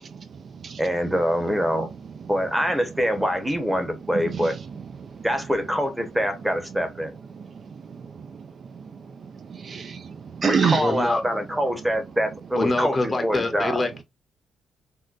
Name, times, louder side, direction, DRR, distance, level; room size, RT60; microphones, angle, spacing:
voice 1, 0.1-0.8 2.2-2.3 4.0-5.3 7.3-10.9, right 6 dB, 50° right, 0.4 m, -30 dB
voice 2, 0.8-1.9 2.3-4.5 5.2-7.1 10.4-13.8, equal, 10° right, 0.9 m, -25 dB
voice 3, 10.8-11.2 12.6-14.0, left 2 dB, 25° left, 0.7 m, -25 dB
3.7 x 2.2 x 2.4 m
cardioid pair, 90°, 0 cm